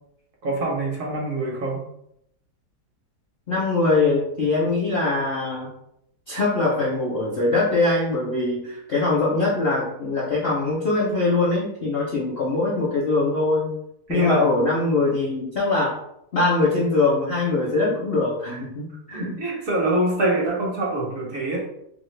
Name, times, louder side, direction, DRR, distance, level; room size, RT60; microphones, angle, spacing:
voice 1, 0.4-1.9 14.1-14.5 19.2-21.6, right 2 dB, 60° right, -3 dB, 1.0 m, -25 dB
voice 2, 3.5-5.7 6.3-13.7 14.1-16.0 16.3-19.3, left 3 dB, 60° left, -5 dB, 0.6 m, -22 dB
2.8 x 2.5 x 3.2 m, 0.76 s
omnidirectional pair, 1.8 m